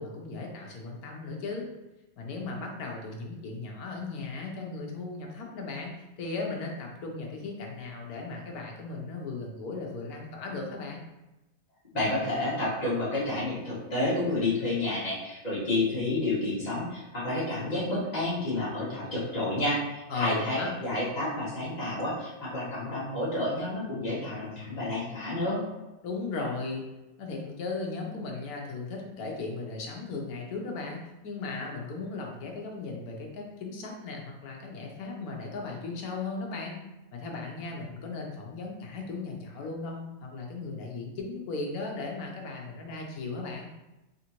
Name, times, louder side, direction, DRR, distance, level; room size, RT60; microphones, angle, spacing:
voice 1, 0.0-1.7 2.2-11.0 20.1-20.7 26.0-26.8 27.2-36.8 37.1-43.7, left 3 dB, 80° left, 0 dB, 1.3 m, -36 dB
voice 2, 11.9-25.6, left 2 dB, 30° left, -9 dB, 1.6 m, -30 dB
3.9 x 3.5 x 2.9 m, 1.0 s
omnidirectional pair, 1.6 m